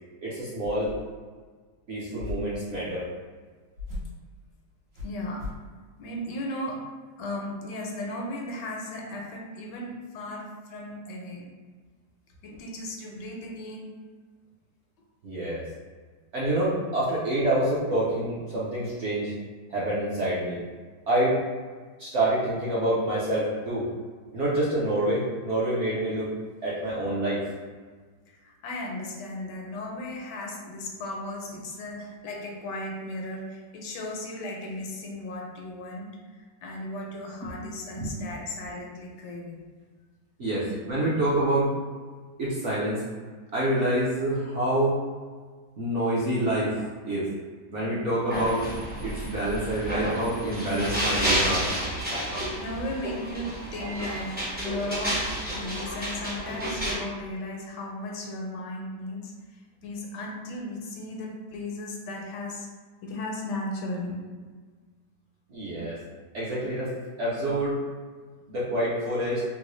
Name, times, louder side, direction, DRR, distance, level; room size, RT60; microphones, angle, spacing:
voice 1, 0.2-0.9 1.9-3.0 15.2-15.6 16.3-19.3 19.7-20.6 21.1-21.4 22.0-23.9 24.3-26.3 26.6-27.4 37.4-37.5 38.0-38.1 40.4-41.7 42.4-43.0 43.5-45.0 45.8-47.3 47.7-48.6 49.0-51.7 65.5-66.0 66.3-66.9 67.2-67.8 68.5-69.4, right 1 dB, 55° right, -9 dB, 0.8 m, -27 dB
sound 1, 0.6-1.2 2.2-2.6 3.8-4.2 4.9-5.7, left 3 dB, 80° right, 1.6 m, -38 dB
voice 2, 5.0-5.5 6.0-6.9 7.2-11.5 12.4-14.0 18.1-18.2 28.3-39.6 52.6-59.3 59.8-62.7 63.0-64.2, left 1 dB, 80° left, 0 dB, 1.2 m, -36 dB
sound 2, 48.3-56.9, right 1 dB, 10° right, 0.4 m, -30 dB
3.7 x 2.2 x 3.0 m, 1.5 s
omnidirectional pair, 1.9 m